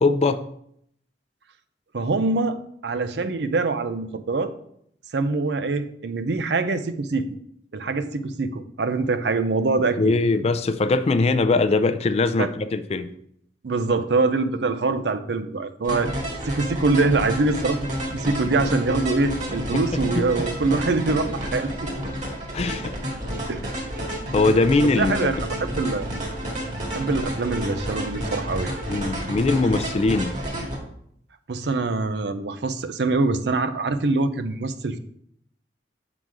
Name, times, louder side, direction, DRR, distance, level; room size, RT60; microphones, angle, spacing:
voice 1, 0.0-0.4 10.0-13.1 19.7-19.8 20.1-20.2 22.5-22.9 24.3-25.2 28.9-30.3, left 3 dB, 35° left, 10 dB, 0.4 m, -21 dB
voice 2, 1.9-4.5 5.1-7.3 7.7-10.1 12.4-12.5 13.6-16.1 16.5-17.8 18.1-21.9 23.5-23.7 24.8-26.1 26.9-28.7 31.5-35.0, right 3 dB, 70° right, 10 dB, 0.5 m, -24 dB
sound 1, 15.8-30.8, equal, 45° right, 1.7 m, -30 dB
7.4 x 3.9 x 4.6 m, 0.70 s
head